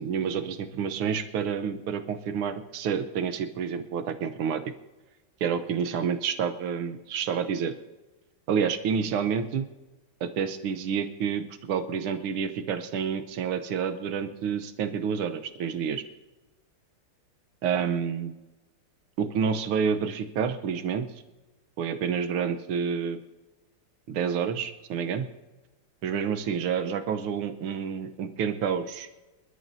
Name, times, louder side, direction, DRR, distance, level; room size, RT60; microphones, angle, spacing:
voice 1, 0.0-4.6 5.4-7.7 8.5-9.7 10.2-16.0 17.6-18.3 19.2-21.1 21.8-23.2 24.1-25.3 26.0-29.1, right 7 dB, 80° right, 9 dB, 1.8 m, -29 dB
26.0 x 13.0 x 2.7 m, 1.1 s
omnidirectional pair, 2.4 m